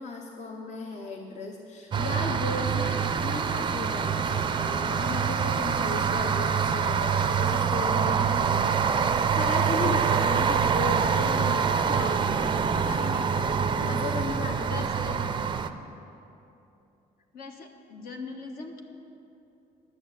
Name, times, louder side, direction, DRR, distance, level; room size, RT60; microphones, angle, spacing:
voice 1, 0.0-9.1 9.3-12.4 12.7-15.3, left 3 dB, 45° left, 2 dB, 0.9 m, -36 dB
sound 1, 1.9-15.7, right 6 dB, 30° right, 0.5 m, -25 dB
voice 2, 14.7-15.2 17.3-18.8, left 3 dB, 60° left, 3 dB, 1.3 m, -41 dB
11.5 x 6.4 x 9.0 m, 2.8 s
cardioid pair, 110°, 17 cm